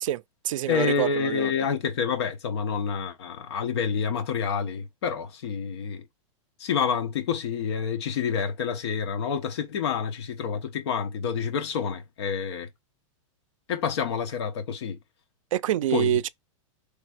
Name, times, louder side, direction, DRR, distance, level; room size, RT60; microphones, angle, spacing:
voice 1, 0.0-1.5 15.5-16.3, right 13 dB, 75° right, 0.4 m, -26 dB
voice 2, 0.7-6.0 6.6-12.7 13.7-15.0 15.9-16.1, left 6 dB, 55° left, 1.0 m, -28 dB
3.4 x 3.3 x 4.8 m
supercardioid pair, 175°, 17 cm